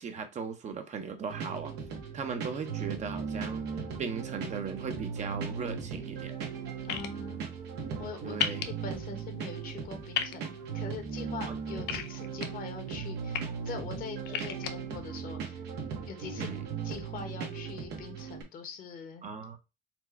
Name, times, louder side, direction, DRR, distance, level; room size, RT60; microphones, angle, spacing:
voice 1, 0.0-1.7 2.1-3.7 4.0-6.4 8.2-8.7 11.5-11.6 16.3-16.6 19.2-19.6, right 6 dB, 45° right, 0.9 m, -37 dB
sound 1, 1.3-18.4, right 6 dB, 85° right, 1.3 m, -38 dB
voice 2, 6.8-7.4 8.0-15.6 16.1-16.5 16.8-19.2, left 5 dB, 55° left, 1.2 m, -43 dB
sound 2, 6.9-7.1 8.4-8.6 10.1-10.3 11.9-12.5 13.1-13.4 14.3-14.7, left 9 dB, 85° left, 0.6 m, -31 dB
4.4 x 2.3 x 4.3 m
cardioid pair, 110°, 17 cm